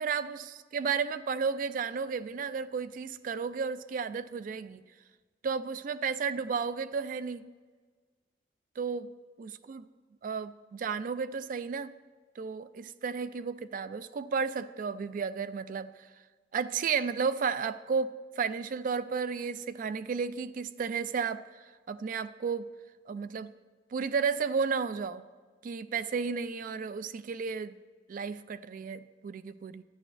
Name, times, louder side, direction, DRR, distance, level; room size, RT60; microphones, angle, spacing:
voice 1, 0.0-4.8 5.4-7.5 8.8-9.1 9.4-9.8 10.2-11.9 12.4-15.9 16.5-21.4 21.9-22.7 23.1-23.5 23.9-25.2 25.6-27.7 28.1-29.8, right 5 dB, 50° right, 14 dB, 0.3 m, -33 dB
11.5 x 9.8 x 2.6 m, 1.5 s
head